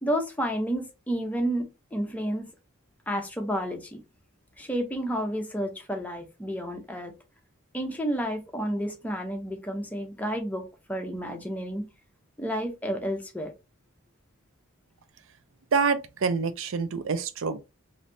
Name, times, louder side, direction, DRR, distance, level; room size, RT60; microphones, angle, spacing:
voice 1, 0.0-2.5 3.1-4.0 4.6-7.1 7.7-11.9 12.4-13.5, equal, 5° left, 0.6 m, -31 dB
voice 2, 15.7-17.6, right 5 dB, 60° right, 0.5 m, -26 dB
3.2 x 2.6 x 2.6 m
head